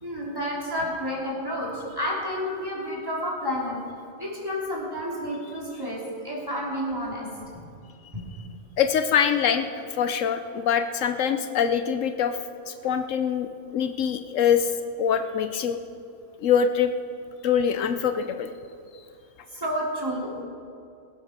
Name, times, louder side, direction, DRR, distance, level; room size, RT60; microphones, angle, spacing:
voice 1, 0.0-3.8 4.2-7.7 8.3-8.4 19.5-20.5, equal, 15° right, -5 dB, 3.4 m, -30 dB
voice 2, 8.8-12.4 12.7-14.7 15.0-15.8 16.4-16.9 17.4-18.5, left 7 dB, 75° left, 9 dB, 1.0 m, -24 dB
21.0 x 8.5 x 6.0 m, 2.6 s
omnidirectional pair, 1.3 m